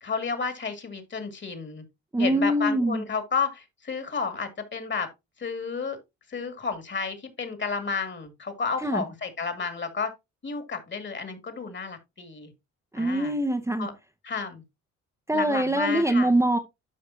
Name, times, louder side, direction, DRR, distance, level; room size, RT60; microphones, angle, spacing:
voice 1, 0.0-1.8 2.2-5.1 5.4-6.0 6.3-10.1 10.4-12.5 13.0-13.4 13.8-13.9 14.2-14.6 15.3-16.3, left 5 dB, 40° left, 2.1 m, -31 dB
voice 2, 2.1-3.0 8.8-9.0 12.9-13.9 15.3-16.6, right 1 dB, 10° right, 0.9 m, -23 dB
12.0 x 5.2 x 2.7 m
cardioid pair, 90°, 30 cm